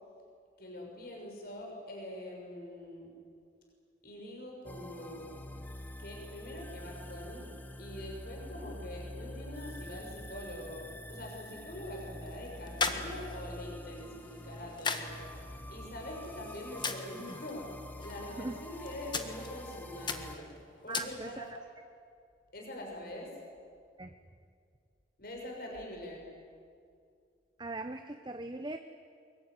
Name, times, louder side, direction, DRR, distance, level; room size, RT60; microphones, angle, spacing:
voice 1, 0.6-3.1 4.0-5.3 6.0-7.5 7.8-15.3 15.7-17.7 18.0-20.5 20.8-21.5 22.5-23.3 25.2-26.3, left 1 dB, 55° left, 0 dB, 6.3 m, -44 dB
sound 1, 4.7-20.4, left 1 dB, 10° left, 1.2 m, -46 dB
sound 2, 11.5-21.6, left 4 dB, 25° left, 1.6 m, -41 dB
voice 2, 18.3-18.6 20.9-21.6 24.0-24.1 27.6-28.8, right 2 dB, 25° right, 7 dB, 0.9 m, -40 dB
24.0 x 23.0 x 9.6 m, 2.2 s
head